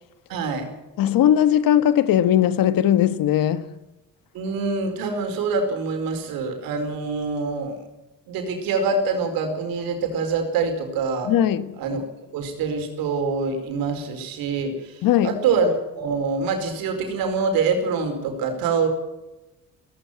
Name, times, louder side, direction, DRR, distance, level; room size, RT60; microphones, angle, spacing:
voice 1, 0.3-0.7 4.3-7.8 8.3-11.3 11.8-12.0 12.3-18.9, right 4 dB, 90° right, 4.7 m, -25 dB
voice 2, 1.0-3.7 11.2-11.8 15.0-15.4, left 11 dB, 75° left, 1.4 m, -19 dB
17.0 x 16.5 x 9.2 m
supercardioid pair, 75°, 34 cm